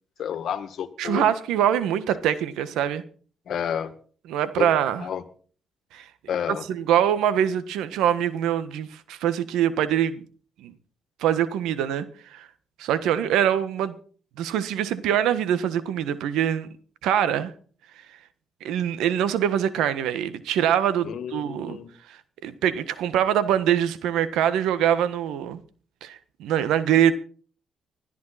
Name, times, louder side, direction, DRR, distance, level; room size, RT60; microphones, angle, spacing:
voice 1, 0.2-1.3 3.5-3.9 4.6-4.7 5.0-5.2 6.3-6.6 21.0-21.9, left 8 dB, 65° left, 1.8 m, -30 dB
voice 2, 1.0-3.0 4.3-5.1 5.9-6.1 6.7-10.2 10.6-10.7 11.2-12.0 12.3-12.5 12.8-14.0 14.4-16.7 17.0-17.5 18.6-21.8 22.1-25.6 26.0-27.1, right 10 dB, 90° right, 1.4 m, -24 dB
20.5 x 12.5 x 4.2 m
cardioid pair, 90°, 0 cm